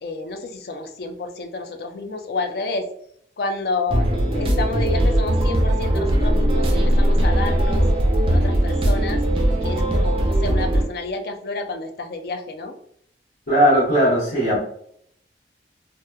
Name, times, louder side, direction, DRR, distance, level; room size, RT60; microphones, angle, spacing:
voice 1, 0.0-2.9 3.4-7.9 8.3-9.2 9.6-12.7, left 3 dB, 60° left, 6 dB, 0.4 m, -29 dB
sound 1, 3.9-10.8, right 1 dB, 30° right, 0.4 m, -19 dB
voice 2, 13.5-14.6, equal, 80° left, -9 dB, 1.0 m, -17 dB
2.9 x 2.1 x 2.2 m, 0.67 s
head